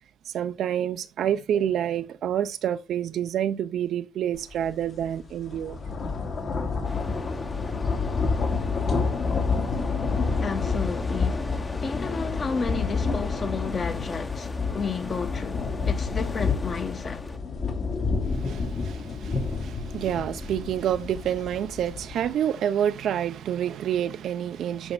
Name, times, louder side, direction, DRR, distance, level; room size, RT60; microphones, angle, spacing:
voice 1, 0.3-5.8 18.3-24.9, right 10 dB, 75° right, 0.6 m, -28 dB
sound 1, 4.5-4.7 5.1-22.3, left 4 dB, 60° left, 2.6 m, -29 dB
sound 2, 6.8-17.4, left 2 dB, 25° left, 1.1 m, -38 dB
voice 2, 10.4-11.4 11.8-17.2, left 5 dB, 40° left, 1.4 m, -32 dB
11.0 x 5.3 x 2.3 m
cardioid pair, 90°, 0 cm